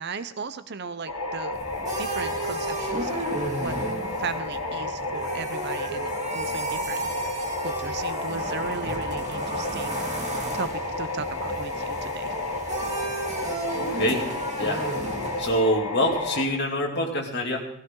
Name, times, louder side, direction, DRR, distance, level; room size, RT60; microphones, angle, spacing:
voice 1, 0.0-1.6 2.0-3.2 3.6-3.8 4.2-7.4 7.6-12.4, right 5 dB, 50° right, 12 dB, 0.7 m, -36 dB
sound 1, 1.1-16.4, left 2 dB, 70° left, 1.9 m, -31 dB
sound 2, 1.5-15.6, right 2 dB, 30° right, 2.3 m, -34 dB
voice 2, 13.7-14.3 14.6-14.8 15.4-17.7, equal, 50° left, 0 dB, 2.6 m, -25 dB
16.0 x 16.0 x 3.8 m, 0.71 s
head